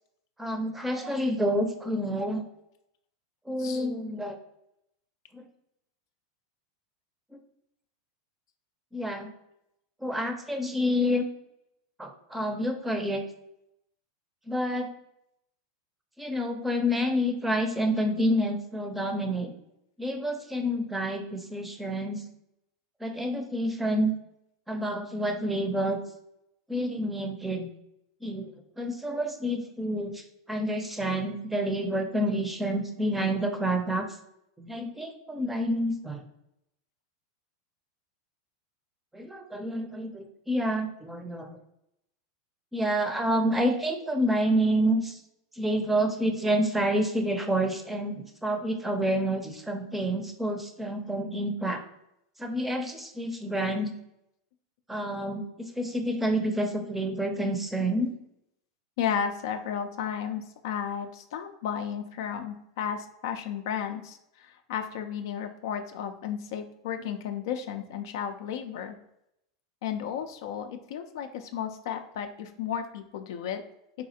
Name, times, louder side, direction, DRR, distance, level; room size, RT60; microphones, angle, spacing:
voice 1, 0.4-2.4 3.5-4.4 5.3-5.4 8.9-9.3 10.0-11.3 12.0-13.2 14.5-14.9 16.2-19.5 20.0-22.2 23.0-24.1 24.7-26.0 26.7-27.7 28.2-34.1 34.6-36.2 39.1-41.6 42.7-45.2 45.5-51.8 52.4-53.9 54.9-58.1, equal, 10° right, 5 dB, 0.5 m, -28 dB
voice 2, 59.0-69.0 69.8-73.6, left 8 dB, 70° left, 6 dB, 0.3 m, -33 dB
4.0 x 2.4 x 2.7 m, 0.80 s
hypercardioid pair, 115°, 2 cm